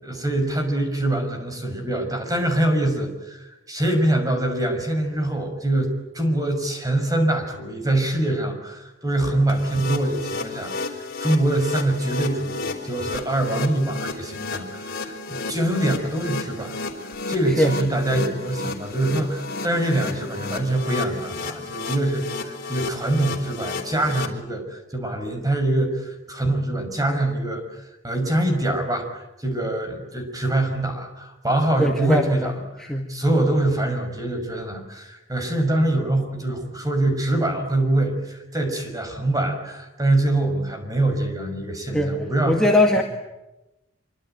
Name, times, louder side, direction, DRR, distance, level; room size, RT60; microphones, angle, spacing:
voice 1, 0.0-3.4 3.7-16.8 17.0-32.5 33.1-42.6, right 1 dB, 20° right, 5 dB, 6.0 m, -24 dB
sound 1, 9.5-24.3, left 3 dB, 50° left, 3.9 m, -32 dB
voice 2, 31.8-32.5 32.8-33.1 41.9-42.2 42.5-43.0, left 1 dB, 5° left, 0 dB, 2.1 m, -20 dB
26.0 x 24.5 x 9.2 m, 0.97 s
head